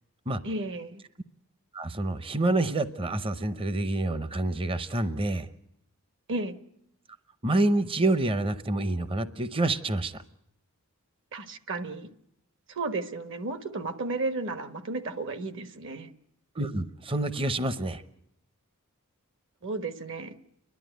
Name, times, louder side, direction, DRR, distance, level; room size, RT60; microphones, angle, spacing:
voice 1, 0.4-1.0 6.3-6.5 11.3-12.1 12.7-16.1 19.6-20.3, right 2 dB, 60° right, 9 dB, 1.3 m, -33 dB
voice 2, 1.7-5.5 7.4-10.2 16.6-18.0, right 2 dB, 25° right, 13 dB, 0.7 m, -27 dB
29.5 x 11.5 x 9.2 m, 0.78 s
head